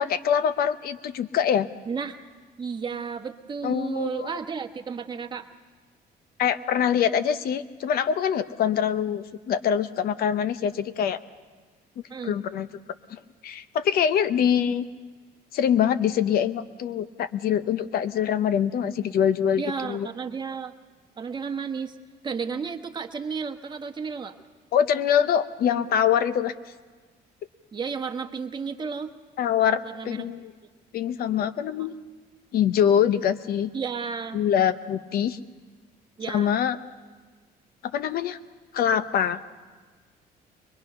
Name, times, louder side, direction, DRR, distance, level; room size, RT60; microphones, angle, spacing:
voice 1, 0.0-1.7 3.6-4.3 6.4-11.2 12.2-12.7 13.1-14.9 15.5-20.1 24.7-26.5 29.4-30.5 30.9-31.9 32.5-33.7 34.3-35.4 36.3-36.8 37.9-38.4 38.7-39.4, left 8 dB, 65° left, 12 dB, 0.8 m, -24 dB
voice 2, 1.9-2.2 2.6-5.5 12.1-12.4 19.6-20.7 21.2-22.0 22.2-24.3 27.7-29.1 29.8-30.3 33.7-34.4 36.2-36.6, right 5 dB, 25° right, 5 dB, 1.2 m, -32 dB
22.5 x 21.5 x 5.7 m, 1.4 s
cardioid pair, 110°, 17 cm